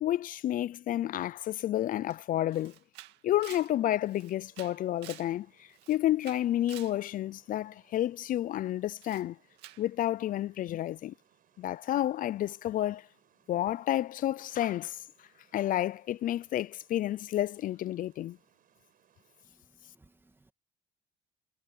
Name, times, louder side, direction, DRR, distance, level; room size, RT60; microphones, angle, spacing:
voice 1, 0.0-2.7 3.2-5.5 5.9-9.4 9.8-11.1 11.6-13.1 13.5-15.0 15.5-18.4, left 13 dB, 55° left, 0.4 m, -30 dB
Camera, 2.1-2.2 2.5-5.3 5.7-7.0 9.0-9.3 9.6-9.9, right 16 dB, 90° right, 2.1 m, -50 dB
Water, 3.7-19.5, right 10 dB, 55° right, 6.7 m, -69 dB
voice 2, 19.4-20.5, right 2 dB, 15° right, 2.3 m, -64 dB
cardioid pair, 110°, 17 cm